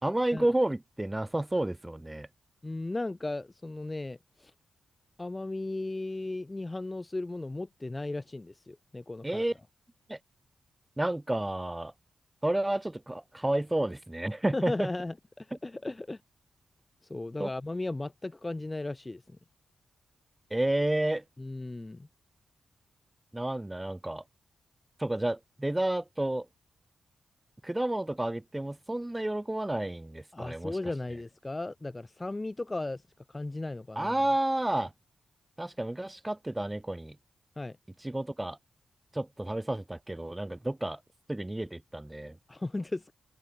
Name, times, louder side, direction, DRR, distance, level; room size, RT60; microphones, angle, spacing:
voice 1, 0.0-2.3 9.2-9.5 10.1-10.2 11.0-11.9 12.4-14.9 17.4-17.5 20.5-21.2 23.3-24.2 25.0-26.5 27.6-30.8 34.0-34.9 35.6-37.1 38.0-38.6 39.1-41.0 41.3-42.3, right 1 dB, 15° right, 4.1 m, -30 dB
voice 2, 2.6-4.5 5.2-9.4 14.5-16.2 17.1-19.2 21.4-22.1 30.3-33.0 33.3-34.2 37.6-37.8 42.5-43.1, left 2 dB, 20° left, 5.1 m, -36 dB
open air
cardioid pair, 85°, 0 cm